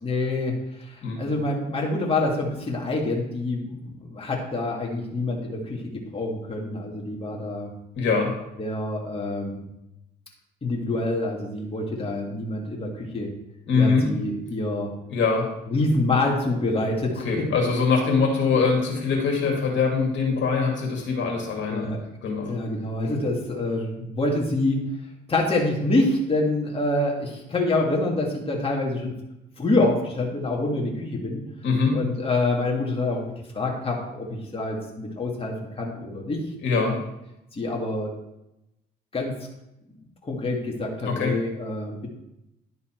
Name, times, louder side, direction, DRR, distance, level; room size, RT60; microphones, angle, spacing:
voice 1, 0.0-5.8 6.1-7.7 8.6-9.6 10.6-13.3 13.7-14.9 15.7-17.5 21.7-22.0 22.4-24.8 25.3-29.1 29.6-31.4 31.9-36.4 36.7-37.0 37.5-38.1 39.1-39.3 40.2-42.1, left 2 dB, 30° left, -1 dB, 1.8 m, -26 dB
voice 2, 8.0-8.3 13.7-14.1 15.1-15.5 17.1-21.9 22.2-22.5 31.6-32.0 36.6-37.0 41.1-41.3, left 4 dB, 70° left, 0 dB, 2.2 m, -23 dB
11.0 x 4.0 x 4.4 m, 0.88 s
cardioid pair, 90°, 20 cm